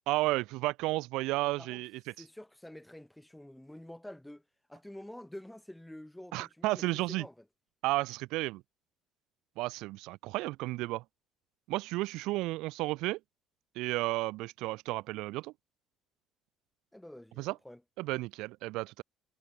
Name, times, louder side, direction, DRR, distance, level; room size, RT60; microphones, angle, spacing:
voice 1, 0.1-1.9 6.3-7.2 7.8-8.6 9.6-11.0 11.7-13.2 13.8-15.5 17.4-17.5 18.0-19.0, right 20 dB, 75° right, 0.3 m, -32 dB
voice 2, 1.4-1.8 2.2-4.4 4.7-7.5 16.9-17.8, left 1 dB, 5° left, 0.8 m, -48 dB
hypercardioid pair, 65°, 0 cm